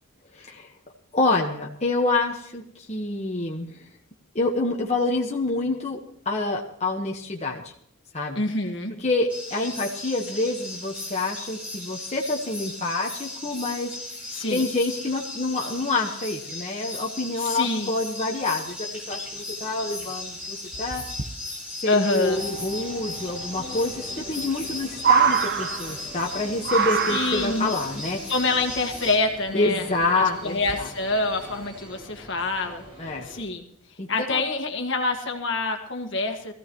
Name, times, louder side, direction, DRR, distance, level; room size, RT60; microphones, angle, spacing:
voice 1, 0.3-0.7 1.1-3.8 4.3-6.0 6.2-7.6 8.1-8.4 9.0-13.9 14.5-21.0 21.8-28.2 29.5-30.9 33.0-33.3 34.0-34.5, left 2 dB, 30° left, -1 dB, 1.3 m, -27 dB
voice 2, 8.4-8.9 14.3-14.7 17.4-17.9 21.8-22.4 27.1-27.7 28.3-29.9 30.2-32.8 33.2-33.6 34.1-36.5, left 3 dB, 60° left, 4 dB, 1.8 m, -26 dB
sound 1, 9.3-29.2, left 2 dB, 5° right, 4.2 m, -37 dB
sound 2, 19.7-19.8 20.0-20.3 20.7-21.3 22.8-22.9 23.1-23.2 23.8-23.9 24.2-26.3 26.6-27.7 28.6-29.3 30.0-30.1 30.6-31.0 31.4-31.6, right 7 dB, 50° right, 0.8 m, -25 dB
sound 3, 22.2-33.4, equal, 25° right, 3.8 m, -43 dB
21.0 x 15.0 x 3.1 m, 0.64 s
head